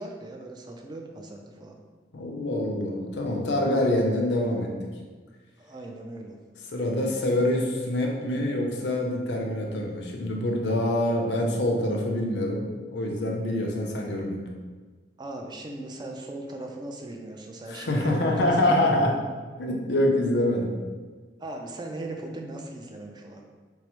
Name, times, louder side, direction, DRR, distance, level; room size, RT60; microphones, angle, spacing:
voice 1, 0.0-1.8 5.6-6.4 15.2-19.1 21.4-23.5, right 2 dB, 25° right, 2 dB, 0.3 m, -38 dB
voice 2, 2.1-4.7 6.7-12.6 12.9-14.4 17.7-19.2 19.6-20.8, left 1 dB, 75° left, 0 dB, 0.6 m, -25 dB
4.6 x 2.0 x 2.9 m, 1.4 s
head